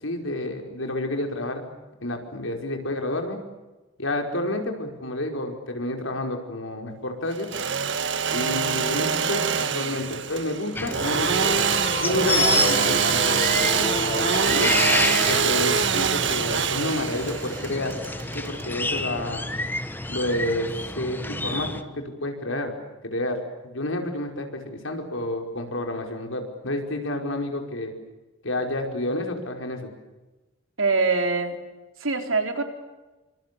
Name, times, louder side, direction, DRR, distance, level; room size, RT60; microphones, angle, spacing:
voice 1, 0.0-1.7 2.0-3.4 4.0-7.5 8.3-11.7 12.0-14.7 15.3-18.0 18.3-19.5 20.1-22.7 23.0-23.4 23.6-28.0 28.4-29.9, left 1 dB, 85° left, 3 dB, 5.2 m, -30 dB
Engine / Sawing, 7.3-19.0, right 6 dB, 65° right, 1.8 m, -24 dB
sound 1, 10.8-21.8, left 2 dB, 10° left, 1.3 m, -29 dB
sound 2, 10.9-18.0, left 2 dB, 30° left, 1.4 m, -33 dB
voice 2, 30.8-31.6 32.0-32.6, right 3 dB, 85° right, 5 dB, 3.8 m, -23 dB
28.0 x 25.5 x 7.0 m, 1.1 s
head